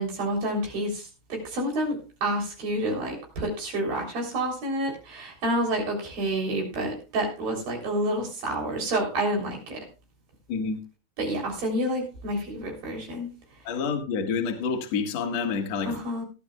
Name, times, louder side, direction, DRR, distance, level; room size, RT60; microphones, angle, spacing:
voice 1, 0.0-9.8 11.2-13.3 15.8-16.2, right 1 dB, 50° right, 1 dB, 5.0 m, -29 dB
voice 2, 10.5-10.8 13.6-15.9, left 5 dB, 65° left, 3 dB, 1.7 m, -28 dB
19.5 x 11.0 x 2.3 m, 0.31 s
omnidirectional pair, 5.5 m